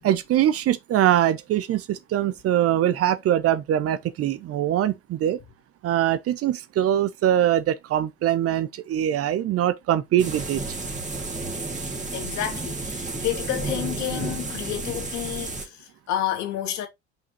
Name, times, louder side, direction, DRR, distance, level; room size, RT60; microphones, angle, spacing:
voice 1, 0.0-5.4 5.8-10.6, right 11 dB, 45° right, 0.8 m, -23 dB
sound 1, 10.2-15.7, right 3 dB, 20° right, 2.4 m, -32 dB
voice 2, 12.1-16.9, left 12 dB, 55° left, 2.6 m, -30 dB
5.7 x 5.7 x 3.1 m
hypercardioid pair, 70°, 34 cm